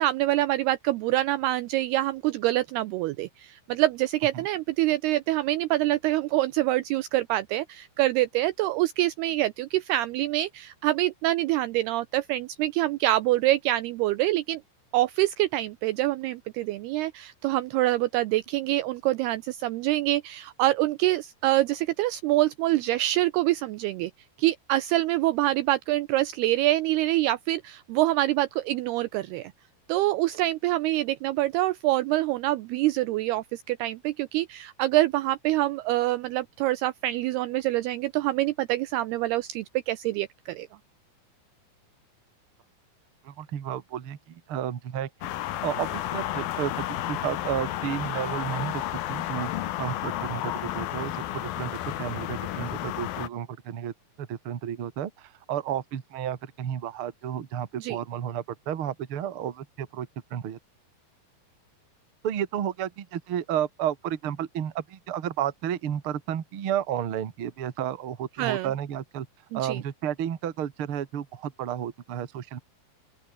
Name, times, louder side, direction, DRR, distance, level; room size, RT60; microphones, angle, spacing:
voice 1, 0.0-14.6 14.9-24.1 24.4-29.5 29.9-40.7 57.8-58.0 68.4-68.7 69.5-69.8, right 16 dB, 90° right, 2.3 m, -25 dB
voice 2, 43.2-45.1 45.4-48.8 49.1-49.5 49.8-53.9 54.2-60.6 62.2-69.3 69.5-72.6, right 10 dB, 65° right, 1.3 m, -32 dB
sound 1, 45.2-53.3, left 13 dB, 65° left, 2.6 m, -32 dB
open air
omnidirectional pair, 5.4 m